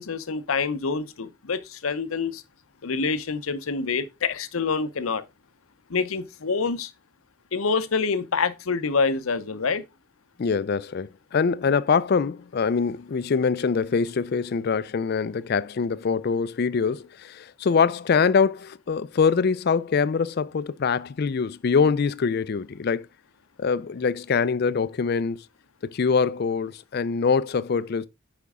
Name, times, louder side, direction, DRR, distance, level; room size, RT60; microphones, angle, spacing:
voice 1, 0.0-2.4 2.8-5.2 5.9-6.9 7.5-9.8, left 4 dB, 85° left, 0.7 m, -26 dB
voice 2, 10.4-23.1 23.6-25.4 25.8-28.1, left 5 dB, 50° left, 0.4 m, -24 dB
8.3 x 5.2 x 3.5 m
head